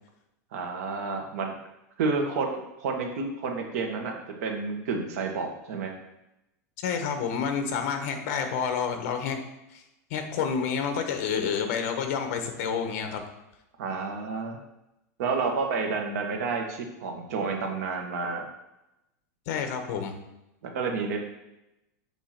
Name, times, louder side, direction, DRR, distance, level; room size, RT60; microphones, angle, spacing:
voice 1, 0.5-1.6 2.0-5.9 13.8-14.6 15.2-18.4 20.7-21.2, right 4 dB, 65° right, 2 dB, 1.4 m, -30 dB
voice 2, 6.8-9.4 9.7-9.8 10.1-13.2 19.5-20.2, left 6 dB, 50° left, 6 dB, 1.0 m, -29 dB
7.3 x 2.9 x 5.8 m, 0.92 s
supercardioid pair, 165°, 9 cm